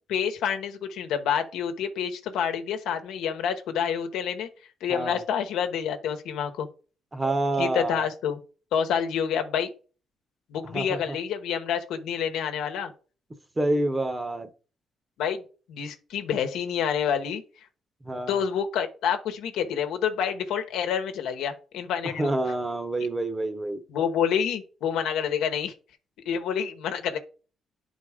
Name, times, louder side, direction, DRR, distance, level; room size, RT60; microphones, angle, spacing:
voice 1, 0.1-4.5 4.8-6.7 7.6-8.4 8.7-9.7 10.5-12.9 15.2-15.4 15.7-17.4 18.3-22.3 23.9-25.7 26.2-27.2, left 8 dB, 85° left, 1.0 m, -28 dB
voice 2, 4.9-5.2 7.1-8.0 10.6-11.2 13.6-14.5 18.0-18.4 22.0-23.8, right 2 dB, 20° right, 1.0 m, -28 dB
9.5 x 4.0 x 4.9 m
cardioid pair, 90°, 0 cm